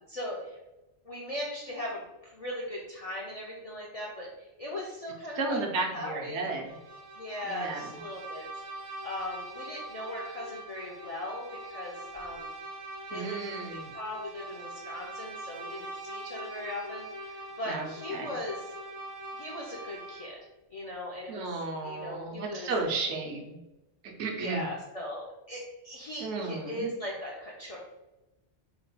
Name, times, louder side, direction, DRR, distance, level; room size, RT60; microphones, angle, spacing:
voice 1, 0.1-0.6 1.0-5.6 5.9-6.5 7.2-8.5 9.0-12.5 13.1-18.7 19.3-20.4 20.7-21.5 21.8-22.7 24.4-27.8, left 1 dB, 55° left, -4 dB, 0.4 m, -39 dB
voice 2, 5.4-6.7 7.4-7.9 13.1-13.9 17.7-18.3 21.3-23.6 24.2-24.7 26.2-26.9, right 3 dB, 75° right, 2 dB, 0.9 m, -33 dB
Bowed string instrument, 6.5-20.4, right 2 dB, 55° right, 0.3 m, -43 dB
3.0 x 2.2 x 3.9 m, 0.99 s
omnidirectional pair, 1.2 m